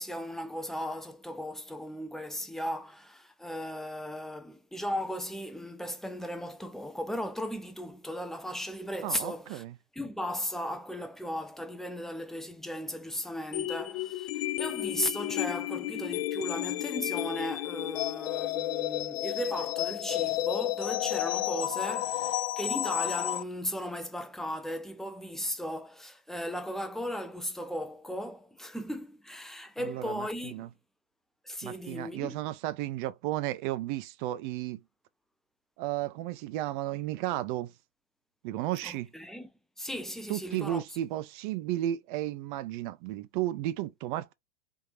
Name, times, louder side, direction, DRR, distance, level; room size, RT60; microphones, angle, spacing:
voice 1, 0.0-9.6 9.9-30.7 31.4-32.4 38.8-39.5 39.8-40.8, equal, ahead, 0.5 m, -36 dB
voice 2, 9.0-9.7 29.8-30.7 31.6-34.8 35.8-37.7 38.4-39.1 40.3-44.3, right 14 dB, 50° right, 0.6 m, -33 dB
sound 1, 13.5-23.4, left 15 dB, 65° left, 0.5 m, -32 dB
3.5 x 2.7 x 3.2 m
hypercardioid pair, 110°, 32 cm